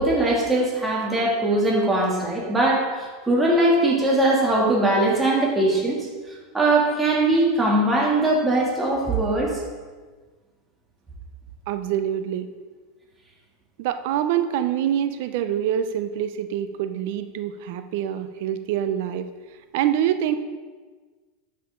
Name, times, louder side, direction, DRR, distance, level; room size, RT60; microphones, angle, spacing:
voice 1, 0.0-6.0 6.5-9.6, right 2 dB, 15° right, -3 dB, 2.7 m, -21 dB
voice 2, 11.7-12.5 13.8-19.3 19.7-20.4, right 10 dB, 70° right, 10 dB, 0.6 m, -25 dB
12.5 x 6.6 x 3.8 m, 1.4 s
hypercardioid pair, 105°, 0 cm